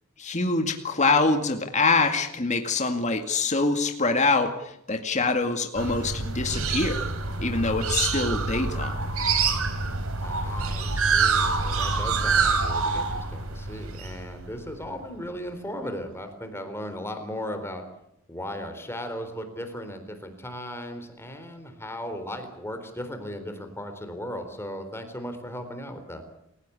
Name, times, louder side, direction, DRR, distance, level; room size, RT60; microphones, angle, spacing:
voice 1, 0.2-7.1 7.4-9.0, left 3 dB, 30° left, 5 dB, 2.1 m, -25 dB
sound 1, 5.8-14.8, right 4 dB, 65° right, 3.5 m, -26 dB
voice 2, 10.2-17.8 18.3-26.2, equal, 10° left, 7 dB, 3.8 m, -37 dB
28.5 x 16.5 x 8.5 m, 0.78 s
head